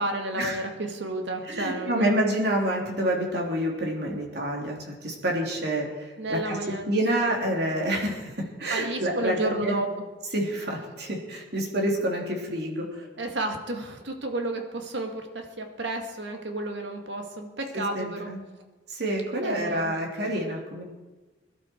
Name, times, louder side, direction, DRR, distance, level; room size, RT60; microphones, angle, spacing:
voice 1, 0.0-2.1 5.6-5.7 6.2-6.9 8.7-10.0 13.2-18.3 19.4-19.9, right 2 dB, 80° right, 4 dB, 2.1 m, -31 dB
voice 2, 1.5-6.6 6.9-9.8 10.3-13.1 17.7-18.4 18.9-20.8, right 1 dB, 60° right, -1 dB, 3.2 m, -28 dB
22.0 x 11.5 x 4.6 m, 1.2 s
head